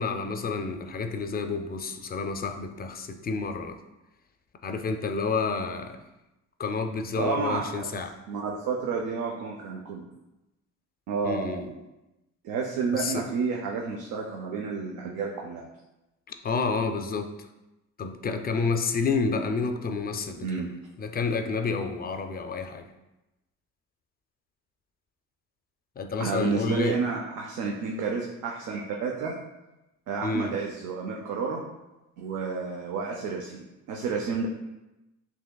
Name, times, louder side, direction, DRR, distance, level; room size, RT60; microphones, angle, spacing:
voice 1, 0.0-3.8 4.6-6.0 6.6-8.1 11.2-11.7 12.9-13.2 16.3-17.3 18.0-20.7 21.0-22.9 26.0-27.0 30.2-30.5, left 4 dB, 30° left, 7 dB, 0.4 m, -29 dB
voice 2, 7.2-7.9 8.3-10.1 11.1-11.7 12.4-15.7 20.4-20.7 26.2-29.4 30.1-31.6 32.2-34.5, right 5 dB, 85° right, 0 dB, 0.6 m, -30 dB
6.1 x 2.8 x 2.2 m, 0.98 s
cardioid pair, 90°, 30 cm